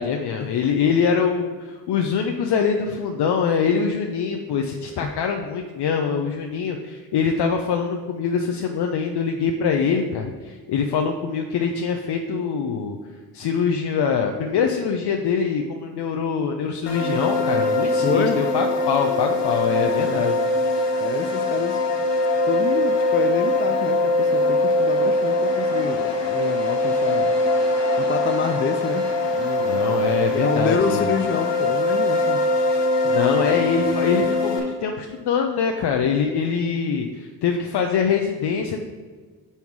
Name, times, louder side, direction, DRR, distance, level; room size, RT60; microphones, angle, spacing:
voice 1, 0.0-13.0 13.3-20.4 29.6-31.1 33.0-38.8, left 6 dB, 65° left, 3 dB, 0.7 m, -24 dB
sound 1, 16.9-34.6, left 2 dB, 85° left, 1.4 m, -22 dB
voice 2, 18.0-18.4 19.7-20.2 21.0-21.8 22.5-27.3 28.0-29.8 30.3-32.4, left 6 dB, 30° left, 7 dB, 0.4 m, -27 dB
5.6 x 5.4 x 4.6 m, 1.5 s
cardioid pair, 70°, 42 cm